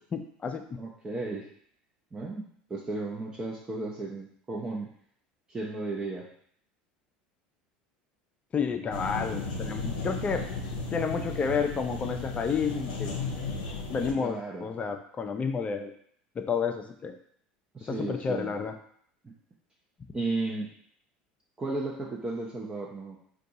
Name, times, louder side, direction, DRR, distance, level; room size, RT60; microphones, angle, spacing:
voice 1, 0.1-0.6 8.5-10.5 10.9-13.1 13.9-15.9 16.4-17.2 18.0-18.8, left 5 dB, 30° left, 6 dB, 0.4 m, -30 dB
voice 2, 0.7-1.5 2.1-4.9 5.5-6.3 14.2-14.7 17.7-18.5 19.2-19.3 20.1-20.7 21.6-23.2, right 2 dB, 20° right, -3 dB, 0.6 m, -34 dB
sound 1, 8.9-14.1, left 3 dB, 80° left, 0.5 m, -35 dB
2.6 x 2.3 x 3.9 m, 0.63 s
hypercardioid pair, 75°, 5 cm